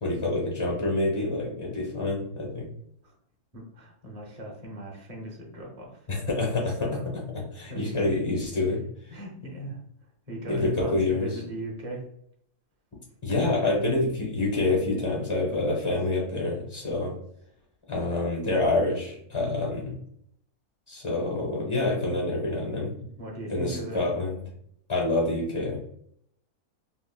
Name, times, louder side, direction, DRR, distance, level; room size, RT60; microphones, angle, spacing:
voice 1, 0.0-2.7 6.1-6.9 7.5-8.8 10.5-11.3 13.2-17.1 17.9-19.9 20.9-22.9 23.5-24.3 24.9-25.8, left 2 dB, 40° left, -3 dB, 0.4 m, -27 dB
voice 2, 3.5-6.1 6.7-7.1 7.7-8.0 9.1-9.8 10.3-12.0 15.7-15.8 23.0-24.0, right 1 dB, 40° right, -2 dB, 0.6 m, -39 dB
3.5 x 2.0 x 2.2 m, 0.69 s
omnidirectional pair, 1.6 m